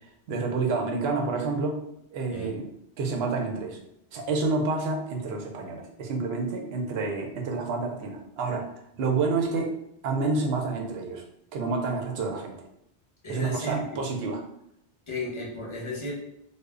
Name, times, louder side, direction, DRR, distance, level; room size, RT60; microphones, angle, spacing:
voice 1, 0.3-1.8 2.1-2.7 3.0-3.8 4.1-8.6 9.0-9.7 10.0-11.2 11.5-12.5 13.3-14.4, right 3 dB, 75° right, 2 dB, 0.8 m, -28 dB
voice 2, 13.2-13.8 15.1-16.1, left 1 dB, 30° left, -4 dB, 0.7 m, -33 dB
2.1 x 2.0 x 3.5 m, 0.77 s
omnidirectional pair, 1.1 m